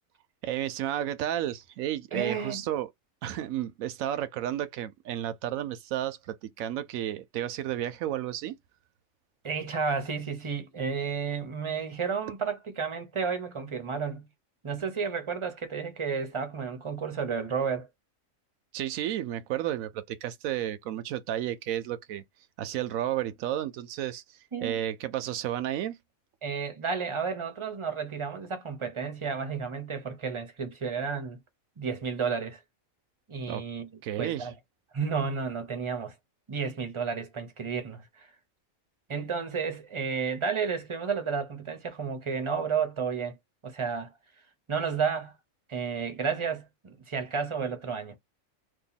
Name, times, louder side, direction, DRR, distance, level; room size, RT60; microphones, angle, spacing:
voice 1, 0.4-2.9 3.2-8.6 18.7-22.2 22.6-26.0 33.5-33.6 34.0-34.5, right 12 dB, 80° right, 1.0 m, -32 dB
voice 2, 2.1-2.6 9.4-14.3 14.6-17.9 24.5-24.8 26.4-31.4 31.8-32.6 33.3-33.9 34.2-34.5 34.9-36.1 36.5-38.3 39.1-43.4 43.6-44.1 44.7-45.3 45.7-48.2, right 6 dB, 30° right, 0.7 m, -32 dB
2.8 x 2.6 x 3.9 m
omnidirectional pair, 1.4 m